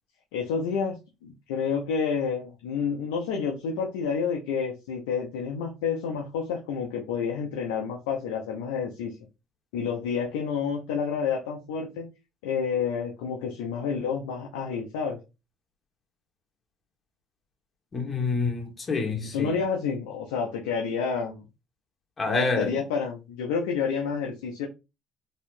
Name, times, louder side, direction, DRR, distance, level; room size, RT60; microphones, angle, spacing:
voice 1, 0.3-1.0 1.2-9.2 9.7-12.1 12.4-15.2 19.3-21.5 22.3-24.7, left 6 dB, 85° left, 0.7 m, -29 dB
voice 2, 17.9-19.5 22.2-22.8, left 4 dB, 35° left, 1.4 m, -27 dB
4.2 x 2.8 x 2.6 m
supercardioid pair, 65°, 0 cm